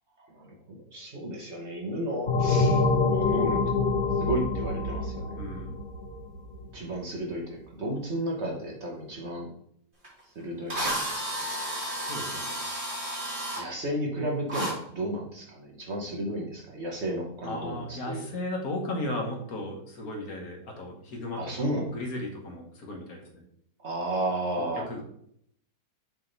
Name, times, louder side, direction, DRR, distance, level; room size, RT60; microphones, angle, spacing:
voice 1, 0.3-3.6 4.2-5.3 6.7-9.5 10.3-11.2 13.6-18.2 21.4-21.9 23.8-24.9, right 1 dB, 45° right, -1 dB, 1.2 m, -33 dB
sound 1, 2.3-6.7, left 3 dB, 85° left, 2.7 m, -26 dB
voice 2, 5.4-5.8 12.1-12.6 17.4-23.4 24.6-25.0, left 1 dB, 60° left, 2 dB, 1.6 m, -36 dB
Drill, 10.0-10.1 10.7-13.6 14.5-14.7, right 1 dB, 30° right, 2.1 m, -32 dB
6.8 x 3.5 x 3.9 m, 0.68 s
omnidirectional pair, 1.8 m